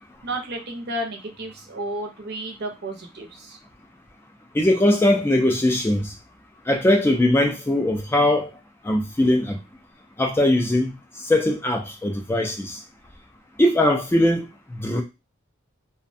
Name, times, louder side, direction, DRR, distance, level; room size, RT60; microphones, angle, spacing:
voice 1, 0.2-3.6, right 1 dB, 55° right, 0.6 m, -32 dB
voice 2, 4.5-6.1 6.7-8.5 8.8-9.6 10.2-10.9 11.2-12.8 13.6-15.0, left 1 dB, 10° left, 0.3 m, -20 dB
2.4 x 2.1 x 2.5 m
head